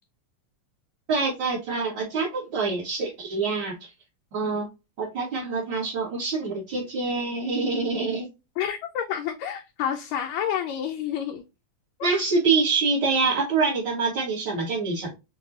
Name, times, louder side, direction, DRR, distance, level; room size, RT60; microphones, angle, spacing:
voice 1, 1.1-3.9 4.3-4.7 5.0-8.3 12.0-15.1, right 4 dB, 50° right, 1.5 m, -25 dB
voice 2, 8.6-11.4 12.0-12.1, left 9 dB, 80° left, 1.7 m, -29 dB
6.1 x 2.3 x 2.4 m
omnidirectional pair, 3.6 m